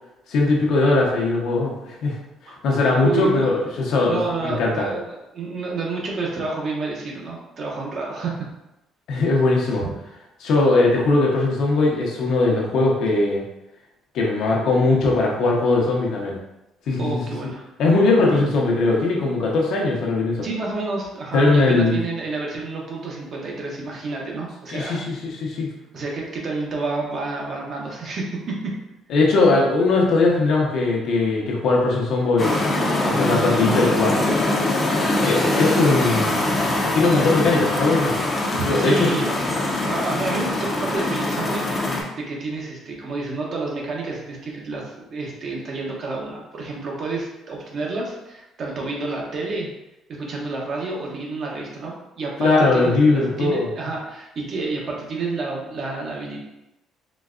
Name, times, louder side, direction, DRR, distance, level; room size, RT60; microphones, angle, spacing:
voice 1, 0.3-2.2 2.6-4.9 9.1-9.9 10.4-13.4 14.1-16.4 16.9-17.2 17.8-20.5 21.3-22.0 24.7-25.7 29.1-32.6 33.0-34.2 35.2-36.7 36.9-38.2 38.7-39.1 52.4-53.7, left 3 dB, 70° left, -2 dB, 0.8 m, -20 dB
voice 2, 3.0-3.5 4.1-8.5 9.8-9.9 17.0-17.6 18.3-18.4 20.4-25.0 25.9-28.7 38.6-41.6 42.2-49.7 50.1-56.4, right 3 dB, 45° right, -2 dB, 0.8 m, -29 dB
sound 1, 32.4-42.0, left 2 dB, 30° left, 0.6 m, -22 dB
3.9 x 2.2 x 2.4 m, 0.91 s
cardioid pair, 115°, 0 cm